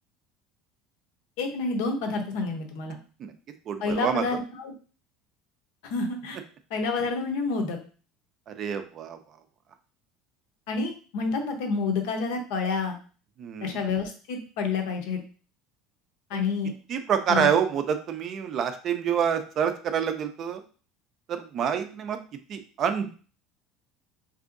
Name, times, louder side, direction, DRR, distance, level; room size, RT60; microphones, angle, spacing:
voice 1, 1.4-3.0 3.8-4.7 5.8-6.4 6.7-7.8 10.7-13.0 13.6-15.2 16.3-16.7 17.3-17.5, left 4 dB, 70° left, 4 dB, 0.7 m, -29 dB
voice 2, 3.7-4.2 8.5-9.2 13.4-13.8 16.3-16.4 16.9-20.6 21.3-22.2 22.5-23.1, right 8 dB, 35° right, 8 dB, 0.4 m, -27 dB
3.5 x 2.7 x 2.5 m, 0.38 s
cardioid pair, 160°, 0 cm